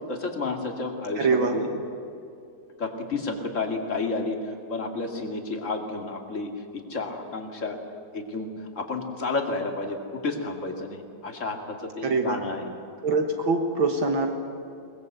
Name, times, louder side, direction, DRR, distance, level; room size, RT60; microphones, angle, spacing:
voice 1, 0.1-1.7 2.8-7.8 8.1-12.6, left 3 dB, 35° left, 3 dB, 2.4 m, -31 dB
voice 2, 1.2-1.6 12.0-12.4 13.0-14.3, right 3 dB, 65° right, 4 dB, 2.2 m, -24 dB
21.5 x 20.0 x 8.1 m, 2.5 s
omnidirectional pair, 2.4 m